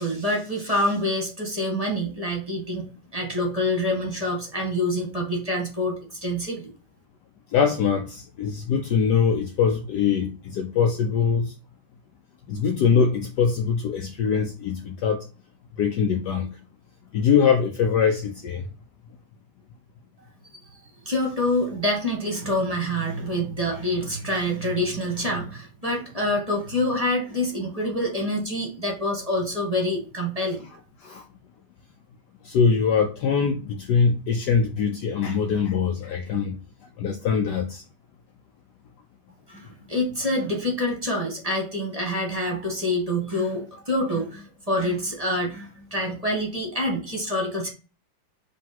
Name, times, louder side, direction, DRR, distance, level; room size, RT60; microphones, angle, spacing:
voice 1, 0.0-2.8 3.1-6.6 21.0-30.6 39.5-47.7, left 1 dB, 20° right, 1.5 m, -26 dB
voice 2, 7.5-11.5 12.5-15.3 15.8-16.6 17.1-18.7 31.0-31.2 32.4-36.6 37.0-37.8, left 6 dB, 70° left, 1.1 m, -23 dB
5.3 x 3.4 x 5.7 m
omnidirectional pair, 2.2 m